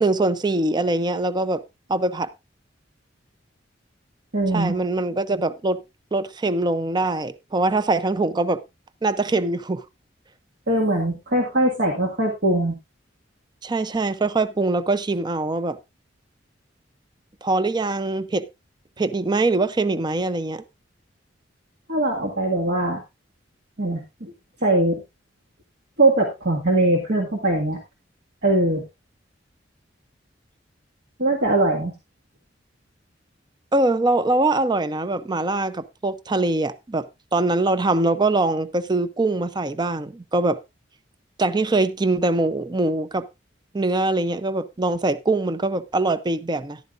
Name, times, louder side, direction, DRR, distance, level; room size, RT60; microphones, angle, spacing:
voice 1, 0.0-1.6 1.9-2.3 4.5-5.8 6.1-8.6 9.0-9.8 13.6-15.8 17.4-18.5 19.0-20.6 33.7-40.6 41.4-43.3 43.7-46.8, right 2 dB, 25° right, 0.5 m, -23 dB
voice 2, 4.3-4.8 10.7-12.8 21.9-23.0 23.8-24.3 24.6-25.0 26.0-27.8 28.4-28.8 31.2-31.9, right 2 dB, 60° right, 1.8 m, -21 dB
13.0 x 11.5 x 2.5 m
head